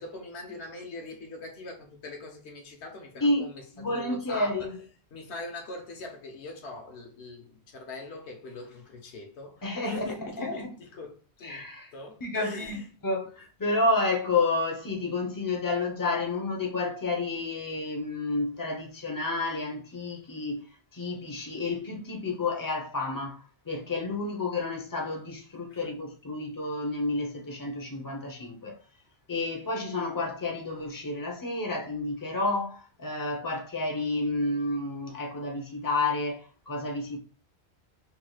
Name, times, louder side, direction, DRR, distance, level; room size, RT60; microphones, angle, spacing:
voice 1, 0.0-4.7 5.1-11.7 11.9-12.9 25.7-25.8, left 2 dB, 75° left, 1.2 m, -42 dB
voice 2, 3.8-4.8 9.6-10.1 10.4-10.7 11.4-11.9 12.2-20.7 20.9-28.8 29.3-37.2, left 2 dB, 20° left, 0.7 m, -30 dB
4.7 x 3.5 x 2.3 m
omnidirectional pair, 1.1 m